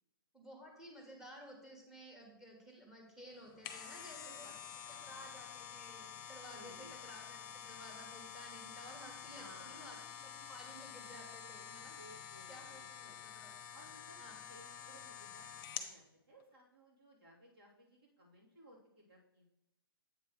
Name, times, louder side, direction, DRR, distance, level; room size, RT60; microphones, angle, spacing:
voice 1, 0.3-4.5 4.9-10.0 10.2-12.0 12.5-13.6 14.2-14.4, equal, 5° right, 1 dB, 1.5 m, -54 dB
sound 1, 3.4-15.9 16.4-16.5, left 9 dB, 30° left, 0.8 m, -49 dB
voice 2, 4.8-5.4 6.5-7.0 9.3-9.9 11.9-13.3 13.7-19.5, equal, 75° right, -5 dB, 3.0 m, -60 dB
8.0 x 3.2 x 6.3 m, 0.84 s
hypercardioid pair, 140°, 12 cm